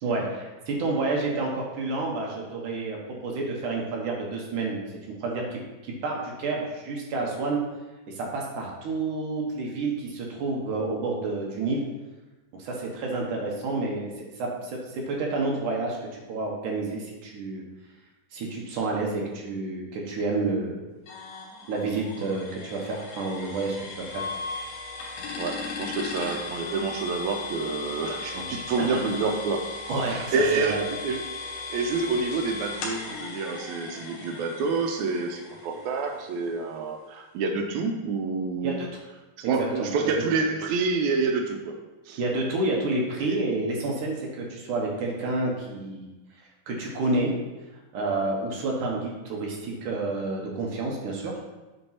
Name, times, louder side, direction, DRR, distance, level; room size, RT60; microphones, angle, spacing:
voice 1, 0.0-7.6 8.1-11.9 12.5-17.6 18.3-20.7 21.7-24.3 28.3-28.5 28.8-28.9 29.9-30.8 38.6-38.9 39.6-40.1 42.2-46.1 46.7-47.3 47.9-51.4, right 3 dB, 65° right, -2 dB, 2.5 m, -29 dB
sound 1, 21.1-36.7, left 4 dB, 80° left, 3.3 m, -37 dB
voice 2, 25.4-29.6 30.1-31.2 31.7-38.8 39.4-42.2 43.3-43.4, right 4 dB, 85° right, 3 dB, 1.7 m, -28 dB
8.3 x 4.5 x 5.7 m, 1.1 s
omnidirectional pair, 4.1 m